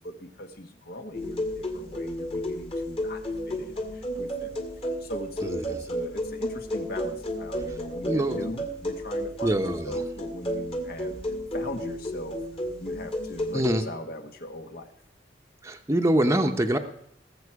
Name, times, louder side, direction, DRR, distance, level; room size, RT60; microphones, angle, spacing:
voice 1, 0.0-4.6 5.0-11.2 11.5-12.4 12.8-14.9, left 1 dB, 60° left, 6 dB, 1.5 m, -40 dB
sound 1, 1.1-13.8, equal, 35° left, 2.0 m, -32 dB
voice 2, 8.0-8.5 9.4-10.0 13.5-13.8 15.6-16.8, right 1 dB, 15° right, 4 dB, 0.8 m, -24 dB
19.0 x 7.6 x 4.8 m, 0.71 s
head